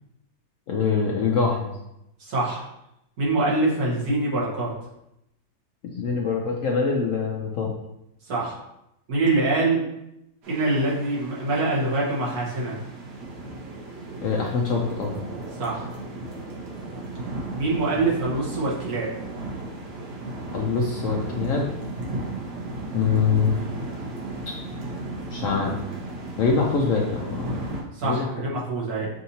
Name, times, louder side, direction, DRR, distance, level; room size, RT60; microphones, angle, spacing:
voice 1, 0.7-1.8 5.9-7.7 14.2-15.2 20.5-21.7 22.9-23.5 25.3-25.7 26.4-27.7 28.0-28.5, left 5 dB, 65° left, 0 dB, 0.8 m, -24 dB
voice 2, 2.2-2.6 3.2-4.7 8.3-8.5 9.1-9.8 10.5-12.8 15.6-15.8 17.6-19.1 27.9-29.1, right 2 dB, 65° right, -5 dB, 1.7 m, -24 dB
sound 1, 10.4-27.8, right 2 dB, 80° right, 1.5 m, -35 dB
6.4 x 2.7 x 2.7 m, 0.84 s
omnidirectional pair, 1.8 m